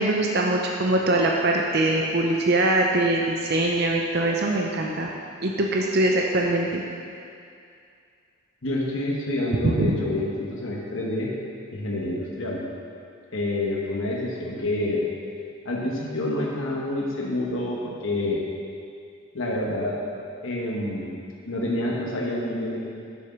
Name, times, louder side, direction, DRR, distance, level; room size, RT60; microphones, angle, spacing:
voice 1, 0.0-5.1 5.4-6.8 9.8-9.9, right 2 dB, 50° right, 0 dB, 0.6 m, -22 dB
voice 2, 8.6-11.3 11.7-12.6 13.3-15.0 15.6-18.4 19.3-20.0 20.4-21.1 21.5-22.8, left 1 dB, 75° left, -3 dB, 1.2 m, -27 dB
7.0 x 6.3 x 5.9 m, 2.4 s
head